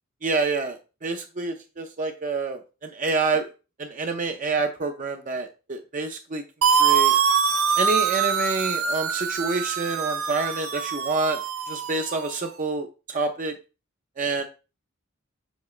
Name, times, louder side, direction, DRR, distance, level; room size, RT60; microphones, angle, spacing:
voice 1, 0.2-3.5 3.8-6.4 6.8-7.1 7.8-11.4 11.7-13.5 14.2-14.5, right 3 dB, 40° right, 4 dB, 0.6 m, -27 dB
sound 1, 6.6-12.4, right 7 dB, 90° right, 0.7 m, -24 dB
7.1 x 4.7 x 3.2 m, 0.32 s
head